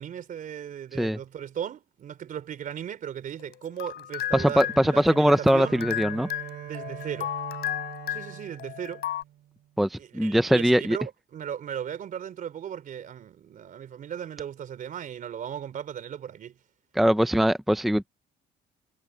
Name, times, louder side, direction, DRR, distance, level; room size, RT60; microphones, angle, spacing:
voice 1, 0.0-5.8 6.7-7.3 8.1-9.0 10.0-16.6, right 9 dB, 50° right, 3.4 m, -37 dB
sound 1, 3.4-9.2, left 13 dB, 70° left, 5.2 m, -34 dB
voice 2, 4.3-6.3 9.8-11.0 17.0-18.1, equal, ahead, 0.6 m, -22 dB
Bowed string instrument, 4.4-9.6, right 13 dB, 70° right, 3.2 m, -42 dB
cardioid pair, 110°, 17 cm